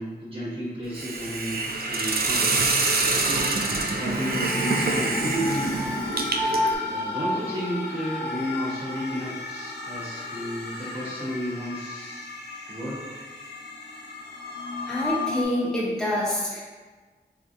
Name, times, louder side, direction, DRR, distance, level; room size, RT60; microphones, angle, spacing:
voice 1, 0.0-1.6 1.9-2.8 3.5-6.0 6.9-12.3 12.7-13.0, equal, 30° right, -11 dB, 0.9 m, -32 dB
Hiss, 0.9-6.8, right 3 dB, 60° right, 0.4 m, -26 dB
sound 1, 1.8-15.4, left 2 dB, 70° left, 0.5 m, -33 dB
sound 2, 4.2-9.4 9.7-9.8, left 2 dB, 40° left, 0.9 m, -40 dB
voice 2, 14.9-16.6, left 1 dB, 5° left, -6 dB, 0.8 m, -26 dB
3.7 x 2.7 x 2.5 m, 1.4 s
cardioid pair, 40°, 18 cm